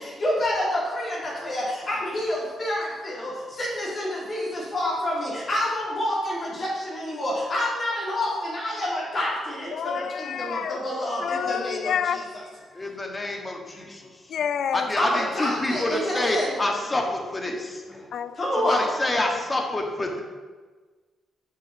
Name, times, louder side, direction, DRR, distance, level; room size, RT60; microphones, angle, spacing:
voice 1, 0.0-11.9 12.7-12.8 13.7-14.0 15.0-16.5 18.4-18.8, left 1 dB, 45° left, -5 dB, 2.7 m, -28 dB
voice 2, 9.7-10.8 11.2-12.4 14.3-14.9 18.1-18.4 18.8-18.9 19.2-19.4, left 8 dB, 70° left, 13 dB, 0.4 m, -29 dB
voice 3, 12.7-14.0 14.7-18.1 18.6-20.2, left 1 dB, 25° left, 2 dB, 1.7 m, -27 dB
6.7 x 5.4 x 5.9 m, 1.4 s
supercardioid pair, 55°, 0 cm